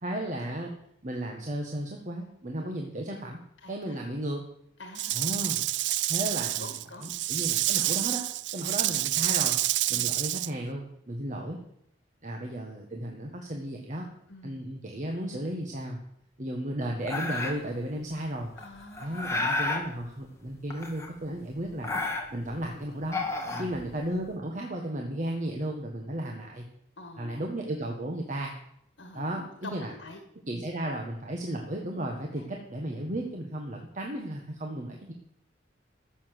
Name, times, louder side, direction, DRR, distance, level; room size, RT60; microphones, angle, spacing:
voice 1, 0.0-0.7 1.0-3.4 3.7-4.4 5.1-5.6 6.1-8.2 8.5-9.6 9.9-11.6 12.2-14.1 14.4-16.0 16.4-18.5 19.0-21.9 22.3-23.2 23.6-26.6 27.2-28.5 29.1-29.9 30.5-35.1, right 1 dB, 45° right, 1 dB, 1.5 m, -34 dB
voice 2, 3.6-3.9 4.8-5.2 6.6-7.1 8.6-8.7 9.9-10.1 14.3-14.6 18.6-19.3 23.5-23.8 27.0-27.4 29.0-29.3 29.6-30.2 30.5-30.6 32.3-32.4, left 2 dB, 80° left, 5 dB, 1.8 m, -46 dB
Rattle / Rattle (instrument), 4.9-10.5, right 15 dB, 70° right, 0.4 m, -28 dB
sound 1, 17.1-17.7 18.6-19.9 20.7-21.3 21.6-22.6 23.0-24.2, left 2 dB, 15° left, 1.8 m, -31 dB
13.0 x 7.3 x 7.6 m, 0.73 s
head